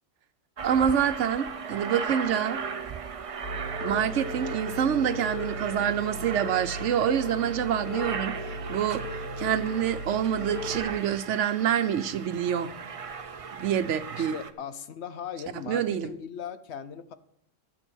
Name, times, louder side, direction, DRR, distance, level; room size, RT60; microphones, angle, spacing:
Aircraft, 0.6-14.5, right 6 dB, 45° right, 0.4 m, -37 dB
voice 1, 0.6-2.6 3.8-8.3 8.7-9.0 9.4-12.7 13.5-14.4 15.7-16.1, right 9 dB, 75° right, 12 dB, 1.0 m, -26 dB
sound 1, 3.4-10.8, equal, 40° left, 3.5 m, -37 dB
voice 2, 14.1-17.2, left 8 dB, 65° left, 11 dB, 1.0 m, -39 dB
11.5 x 7.2 x 6.2 m, 0.71 s
omnidirectional pair, 1.3 m